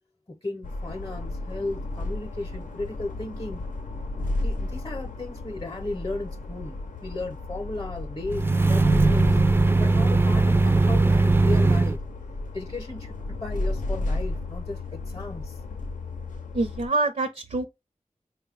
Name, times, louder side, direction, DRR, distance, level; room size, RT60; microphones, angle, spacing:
voice 1, 0.3-3.6 4.2-9.3 9.8-12.0 12.5-15.6, left 2 dB, 30° left, 0.7 m, -35 dB
sound 1, 0.6-16.9, left 2 dB, 85° left, 0.6 m, -33 dB
sound 2, 8.3-12.0, right 3 dB, 15° right, 0.3 m, -19 dB
voice 2, 16.5-17.7, right 2 dB, 70° right, 0.6 m, -26 dB
4.3 x 2.2 x 3.3 m
wide cardioid pair, 60°, 13 cm